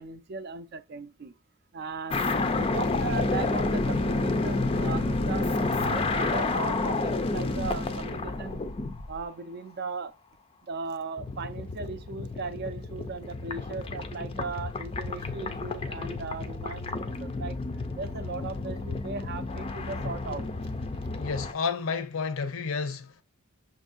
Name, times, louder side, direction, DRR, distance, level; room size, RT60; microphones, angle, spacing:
voice 1, 0.0-1.3 1.7-2.2 2.6-5.5 5.8-8.6 9.1-10.1 10.6-17.6 18.0-20.5, right 4 dB, 50° right, 0.5 m, -37 dB
sound 1, 2.1-9.2 11.2-21.5, left 3 dB, 25° left, 0.4 m, -30 dB
voice 2, 21.2-23.2, left 5 dB, 70° left, 0.6 m, -31 dB
6.1 x 2.6 x 2.4 m
head